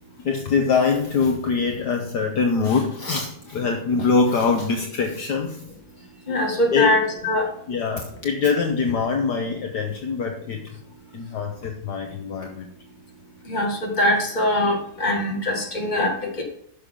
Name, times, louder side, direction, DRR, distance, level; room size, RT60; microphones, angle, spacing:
voice 1, 0.2-5.6 6.7-6.9 7.7-10.6 11.1-12.7, left 5 dB, 65° left, 3 dB, 1.3 m, -23 dB
voice 2, 6.3-7.5 13.5-16.4, left 1 dB, 25° left, 1 dB, 1.8 m, -22 dB
10.5 x 6.6 x 3.7 m, 0.70 s
omnidirectional pair, 2.2 m